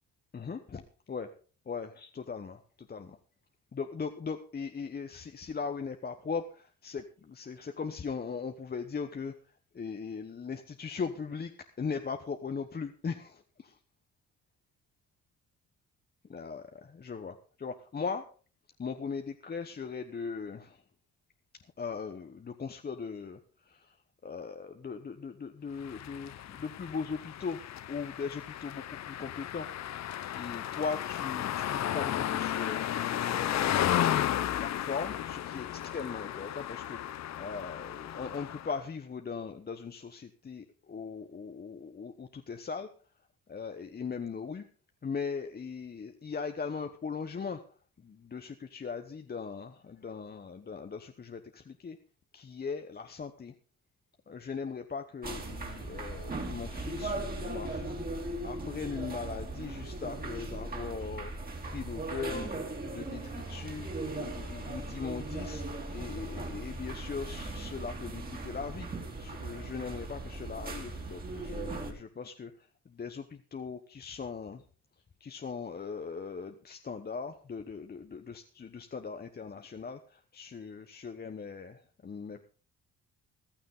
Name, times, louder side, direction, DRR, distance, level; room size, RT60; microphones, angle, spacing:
voice 1, 0.3-0.8 1.1-1.3 1.7-2.6 2.9-3.2 3.7-9.3 9.7-11.5 11.8-13.8 16.3-18.2 18.8-20.8 21.8-23.4 23.7-23.9 24.2-27.6 27.9-29.7 30.3-37.0 37.4-42.9 43.5-44.6 45.0-47.6 48.0-52.0 52.3-53.5 54.3-58.0 58.4-61.3 61.6-62.5 62.9-63.9 64.2-68.9 69.2-72.5 72.9-74.6 75.2-82.4, left 5 dB, 30° left, 7 dB, 1.0 m, -39 dB
sound 1, 25.8-38.8, left 11 dB, 60° left, 0.8 m, -33 dB
sound 2, 55.2-71.9, right 2 dB, 30° right, 3.2 m, -38 dB
15.0 x 12.5 x 3.8 m, 0.39 s
cardioid pair, 90°, 30 cm